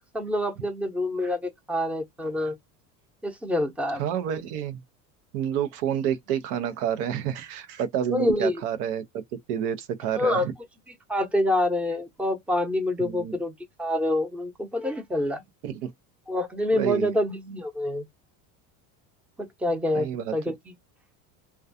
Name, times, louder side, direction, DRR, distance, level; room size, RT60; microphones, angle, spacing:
voice 1, 0.1-2.6 3.2-4.0 8.1-8.6 10.2-10.5 11.1-13.5 13.8-15.4 16.3-18.0 19.4-20.1 20.3-20.5, left 1 dB, 5° right, 0.6 m, -26 dB
voice 2, 4.0-4.8 5.3-9.2 9.5-10.5 13.0-13.4 15.6-15.9 16.7-17.1 19.9-20.3, right 9 dB, 80° right, 0.7 m, -29 dB
2.3 x 2.3 x 2.6 m
supercardioid pair, 90°, 46 cm